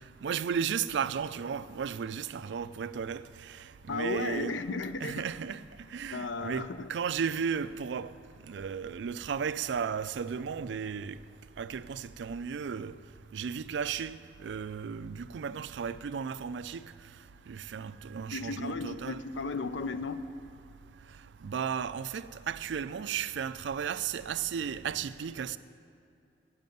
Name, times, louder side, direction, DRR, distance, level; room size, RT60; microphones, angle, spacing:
voice 1, 0.2-3.2 3.9-4.6 5.0-5.6 5.9-8.1 8.5-11.1 11.6-12.9 13.3-16.8 17.5-19.2 21.4-25.6, right 7 dB, 70° right, 0.4 m, -34 dB
voice 2, 3.9-5.2 6.1-6.9 18.3-20.2, left 3 dB, 90° left, 0.6 m, -35 dB
10.5 x 6.7 x 9.2 m
head